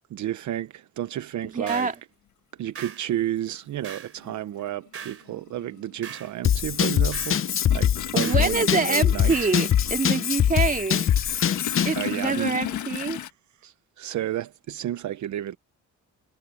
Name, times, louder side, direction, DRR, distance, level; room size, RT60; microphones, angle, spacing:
voice 1, 0.1-1.9 2.6-7.4 7.7-9.5 11.2-12.6 13.2-13.3 13.6-15.6, right 12 dB, 70° right, 1.0 m, -32 dB
voice 2, 1.5-1.9 8.1-11.1 11.8-13.2, right 4 dB, 25° right, 2.5 m, -26 dB
sound 1, 1.7-2.0 2.7-3.1 3.8-4.2 4.9-5.3 6.0-6.3 7.1-7.4 8.2-8.5 9.3-9.6, right 7 dB, 50° right, 3.6 m, -40 dB
Toilet flush, 2.8-2.9 4.2-4.3 4.7-13.3, left 11 dB, 75° left, 1.7 m, -36 dB
Drum kit / Drum, 6.4-12.0, left 9 dB, 45° left, 0.8 m, -23 dB
cardioid pair, 90°, 30 cm